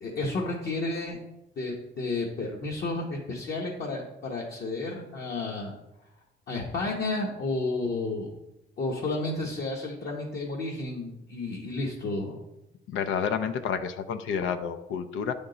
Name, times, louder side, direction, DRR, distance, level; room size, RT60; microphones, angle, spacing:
voice 1, 0.0-1.2 1.6-5.7 6.5-8.3 8.8-12.4, left 2 dB, 55° left, -2 dB, 1.1 m, -31 dB
voice 2, 12.9-15.3, left 7 dB, 80° left, 9 dB, 0.5 m, -30 dB
9.0 x 3.6 x 3.9 m, 0.91 s
cardioid pair, 90°, 20 cm